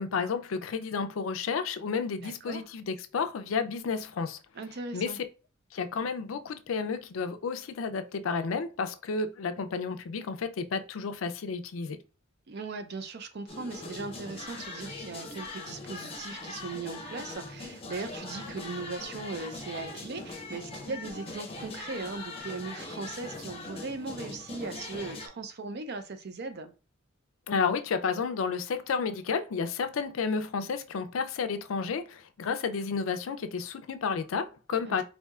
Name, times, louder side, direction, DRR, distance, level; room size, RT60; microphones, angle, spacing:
voice 1, 0.0-4.4 4.9-5.2 5.7-12.0 27.5-35.0, left 5 dB, 85° left, 0.4 m, -31 dB
voice 2, 2.2-2.6 4.6-5.2 12.5-26.7 34.9-35.0, right 3 dB, 55° right, 0.5 m, -39 dB
sound 1, 13.5-25.3, left 3 dB, 30° left, 0.6 m, -41 dB
4.3 x 2.7 x 2.3 m
head